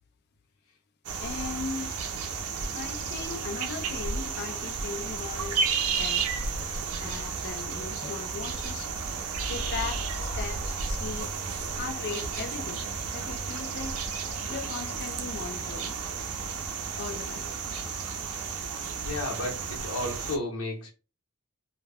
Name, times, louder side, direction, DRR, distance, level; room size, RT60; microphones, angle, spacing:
sound 1, 1.0-20.4, right 5 dB, 70° right, 0.5 m, -32 dB
voice 1, 1.2-2.0 2.7-5.7 5.9-6.3 7.0-8.9 9.5-11.3 11.7-12.8 13.1-14.0 14.5-16.0 17.0-17.5, left 5 dB, 45° left, 0.4 m, -38 dB
voice 2, 19.0-20.9, left 2 dB, 65° left, 0.9 m, -33 dB
2.2 x 2.2 x 3.3 m
head